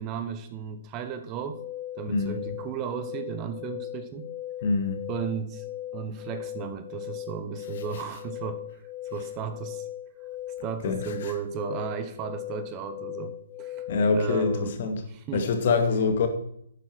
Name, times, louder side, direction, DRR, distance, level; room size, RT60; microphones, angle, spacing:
voice 1, 0.0-1.6 1.9-4.3 5.1-5.6 5.9-8.8 9.1-9.9 10.6-13.9 14.1-14.8 15.1-15.5, right 7 dB, 25° right, 9 dB, 1.1 m, -35 dB
sound 1, 1.5-14.8, left 12 dB, 25° left, 0.8 m, -39 dB
voice 2, 2.1-2.4 4.6-5.0 10.8-11.3 13.9-15.0 15.3-16.3, left 4 dB, 50° left, 6 dB, 2.1 m, -25 dB
11.5 x 9.8 x 4.6 m, 0.70 s
figure-of-eight pair, 125°, 0 cm